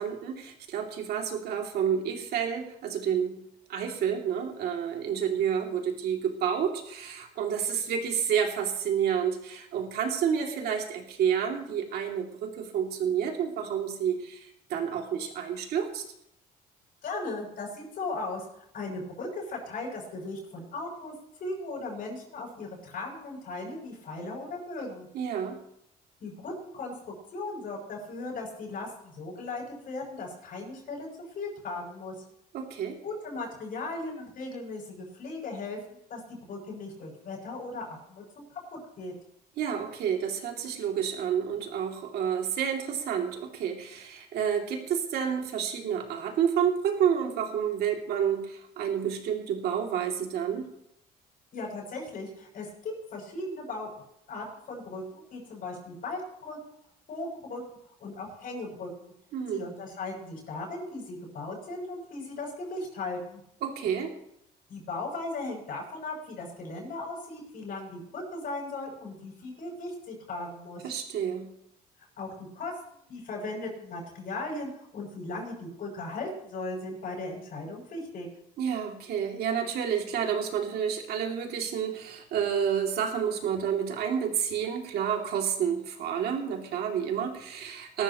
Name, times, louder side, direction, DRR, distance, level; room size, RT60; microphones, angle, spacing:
voice 1, 0.0-3.3 3.7-16.0 25.1-25.6 32.5-33.0 39.6-50.6 59.3-59.6 63.6-64.1 70.8-71.5 78.6-88.0, right 8 dB, 70° right, 2 dB, 2.7 m, -29 dB
voice 2, 17.0-21.1 21.4-25.1 26.2-26.9 27.3-31.1 31.3-32.1 33.0-39.1 51.5-53.9 54.3-56.6 57.1-59.1 59.5-63.4 64.7-70.8 72.2-72.7 73.1-78.3, left 2 dB, 60° left, -3 dB, 6.5 m, -37 dB
20.0 x 13.5 x 3.1 m, 0.76 s
cardioid pair, 110°, 17 cm